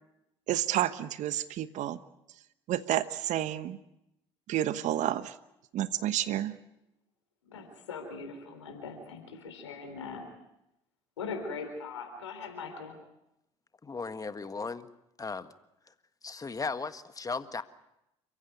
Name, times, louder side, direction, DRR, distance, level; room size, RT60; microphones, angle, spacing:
voice 1, 0.5-2.0 2.7-3.8 4.5-5.4 5.7-6.6, right 12 dB, 55° right, 13 dB, 1.2 m, -30 dB
voice 2, 7.5-10.3 11.2-13.0, left 4 dB, 85° left, 5 dB, 3.9 m, -40 dB
voice 3, 13.8-14.9 15.2-15.5 16.2-17.6, left 4 dB, 25° left, 10 dB, 1.6 m, -36 dB
29.5 x 16.0 x 9.4 m, 0.87 s
hypercardioid pair, 60°, 15 cm